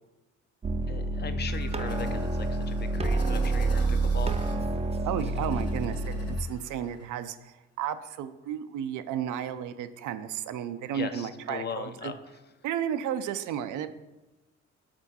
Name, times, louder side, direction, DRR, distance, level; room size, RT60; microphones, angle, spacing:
sound 1, 0.6-6.4, right 2 dB, 20° right, 0.4 m, -28 dB
voice 1, 0.9-4.4 10.9-12.1, left 6 dB, 35° left, 9 dB, 0.5 m, -38 dB
sound 2, 1.5-7.1, left 2 dB, 50° left, 1.2 m, -48 dB
voice 2, 5.0-12.1 12.6-13.9, right 9 dB, 85° right, 11 dB, 0.5 m, -33 dB
6.1 x 4.4 x 4.1 m, 1.0 s
cardioid pair, 90°, 30 cm